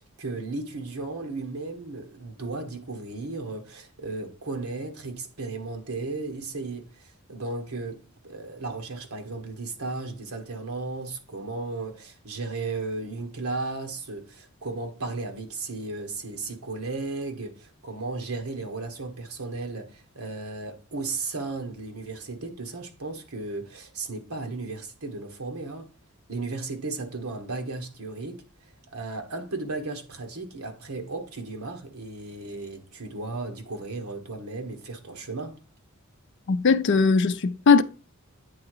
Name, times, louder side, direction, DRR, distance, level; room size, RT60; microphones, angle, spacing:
voice 1, 0.0-25.9 26.3-28.4 28.9-35.6, right 3 dB, 80° right, 1.4 m, -35 dB
voice 2, 36.5-37.8, left 4 dB, 55° left, 0.5 m, -19 dB
8.6 x 3.7 x 4.8 m
head